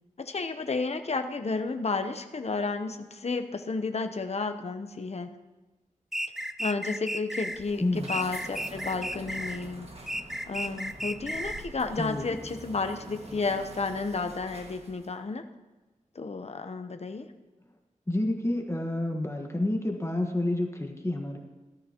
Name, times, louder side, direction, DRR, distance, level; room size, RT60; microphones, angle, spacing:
voice 1, 0.2-5.3 6.6-9.9 10.5-15.4 16.1-17.3, left 4 dB, 50° left, 8 dB, 0.9 m, -32 dB
sound 1, 6.1-7.6 8.1-9.6 10.1-11.7, equal, 5° right, 0.5 m, -34 dB
sound 2, 7.3-15.2, right 2 dB, 50° right, 1.8 m, -45 dB
voice 2, 7.8-8.1 12.0-12.3 18.1-21.4, left 1 dB, 20° left, 2 dB, 1.5 m, -29 dB
18.0 x 13.0 x 3.0 m, 1.1 s
wide cardioid pair, 65°, 14 cm